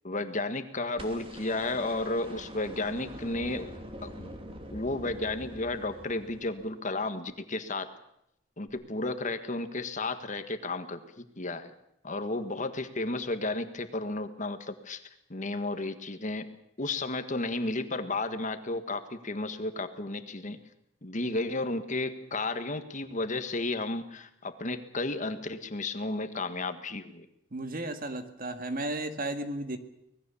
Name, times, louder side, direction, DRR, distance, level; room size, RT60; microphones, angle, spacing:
voice 1, 0.0-3.7 4.0-4.3 4.7-7.9 8.6-11.7 12.0-15.0 15.3-16.5 16.8-20.6 21.0-27.3, left 2 dB, 40° left, 9 dB, 1.7 m, -33 dB
sound 1, 1.0-7.2 8.7-8.8, equal, 30° right, 2.8 m, -45 dB
voice 2, 27.5-29.8, right 1 dB, 50° right, 8 dB, 2.0 m, -34 dB
25.0 x 20.0 x 7.1 m, 0.77 s
head